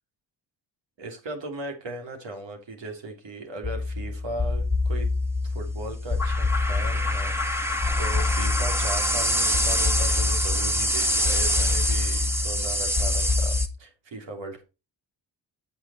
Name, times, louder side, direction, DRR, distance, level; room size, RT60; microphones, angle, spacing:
voice 1, 1.0-5.1 5.4-14.6, right 2 dB, 75° right, 3.0 m, -37 dB
sound 1, 3.6-13.7, left 2 dB, 5° right, 1.5 m, -24 dB
8.6 x 6.6 x 4.2 m
cardioid pair, 70°, 45 cm